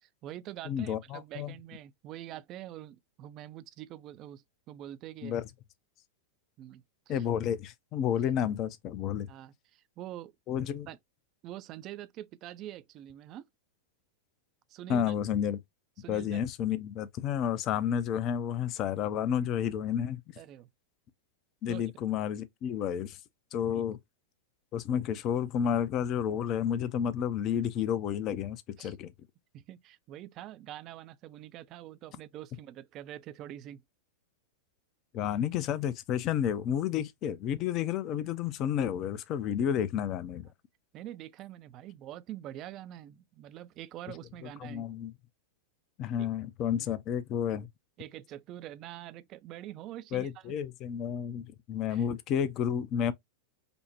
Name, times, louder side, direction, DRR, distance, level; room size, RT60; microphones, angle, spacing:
voice 1, 0.0-5.4 6.6-7.2 9.3-10.3 10.9-11.0 11.4-13.5 14.7-15.1 16.0-16.4 20.4-20.7 21.7-21.8 23.7-23.9 28.8-29.0 29.5-33.8 40.9-44.9 46.8-47.0 48.0-50.4 51.9-52.0, right 13 dB, 35° right, 0.4 m, -45 dB
voice 2, 0.7-1.5 5.2-5.4 7.1-9.3 10.5-10.9 14.9-15.6 16.1-20.2 21.6-23.2 23.5-24.0 24.7-29.1 35.1-40.5 44.6-45.1 46.0-47.7 50.1-53.1, left 9 dB, 35° left, 0.5 m, -31 dB
5.1 x 2.0 x 2.8 m
figure-of-eight pair, 95°, 0 cm